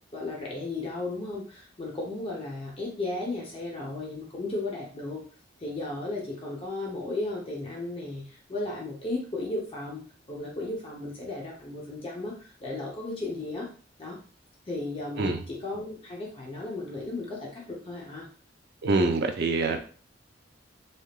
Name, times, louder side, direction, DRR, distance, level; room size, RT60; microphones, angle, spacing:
voice 1, 0.1-5.2 5.6-10.0 10.3-13.7 14.0-14.2 14.7-18.3, left 2 dB, 30° left, -2 dB, 0.7 m, -35 dB
voice 2, 18.8-19.8, right 3 dB, 60° right, 5 dB, 0.4 m, -25 dB
3.4 x 2.8 x 2.3 m, 0.40 s
head